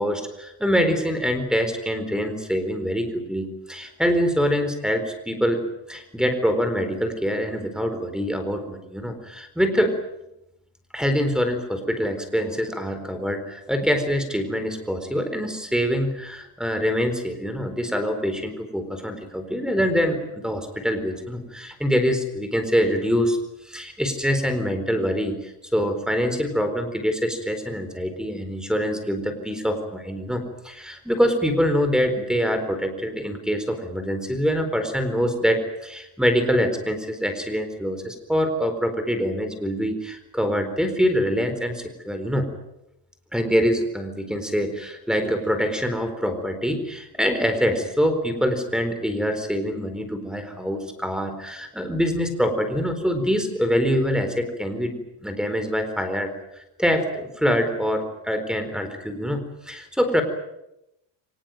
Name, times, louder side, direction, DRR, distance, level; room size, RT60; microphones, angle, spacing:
voice 1, 0.0-9.9 10.9-23.4 23.6-42.5 43.3-60.2, equal, ahead, 8 dB, 4.2 m, -25 dB
24.0 x 20.0 x 9.2 m, 0.86 s
cardioid pair, 130°, 45 cm